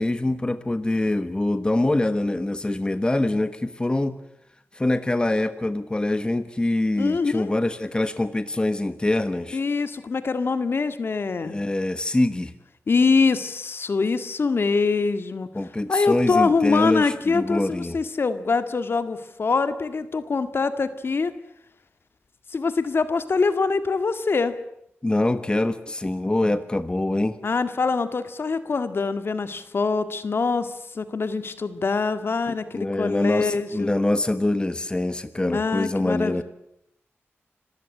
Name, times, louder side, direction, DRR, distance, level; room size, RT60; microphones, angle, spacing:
voice 1, 0.0-4.2 4.7-9.6 11.4-12.5 15.5-18.0 25.0-27.4 32.5-36.4, left 2 dB, 20° left, 12 dB, 1.3 m, -24 dB
voice 2, 7.0-7.5 9.5-11.6 12.9-15.5 15.9-21.3 22.5-24.6 27.4-33.9 35.5-36.4, left 4 dB, 55° left, 11 dB, 1.9 m, -24 dB
27.0 x 15.5 x 9.9 m, 0.79 s
wide cardioid pair, 80°, 5 cm